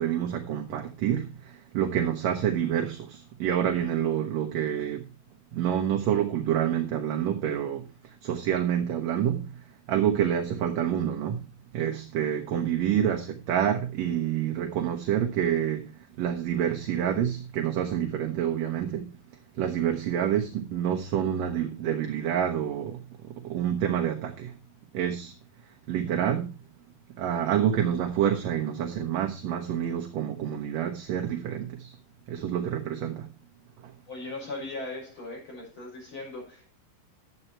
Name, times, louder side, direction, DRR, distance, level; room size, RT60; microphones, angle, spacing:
voice 1, 0.0-5.1 5.5-7.9 8.2-9.6 9.9-11.5 11.7-19.1 19.5-24.6 24.9-25.3 25.9-26.6 27.2-32.0 32.3-33.3 33.8-33.9, right 9 dB, 65° right, 1.9 m, -28 dB
voice 2, 34.1-36.7, left 2 dB, 35° left, 6.7 m, -38 dB
11.0 x 7.9 x 4.4 m
omnidirectional pair, 3.8 m